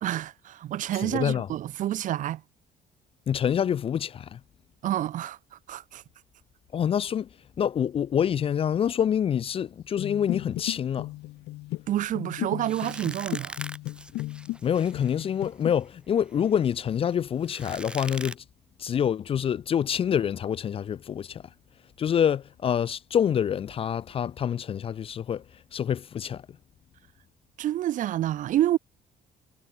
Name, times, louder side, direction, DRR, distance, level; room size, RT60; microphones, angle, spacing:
voice 1, 0.0-2.4 4.8-6.0 11.9-13.6 27.6-28.8, right 12 dB, 50° right, 0.4 m, -28 dB
voice 2, 1.0-1.5 3.3-4.4 6.7-7.3 7.6-11.1 14.6-18.4 18.8-21.4 22.0-25.4 25.7-26.4, left 8 dB, 35° left, 0.3 m, -26 dB
sound 1, 9.9-14.6 14.9-15.7, left 19 dB, 80° left, 1.0 m, -36 dB
sound 2, 12.7-18.3, right 1 dB, 5° right, 1.6 m, -42 dB
cardioid pair, 110°, 17 cm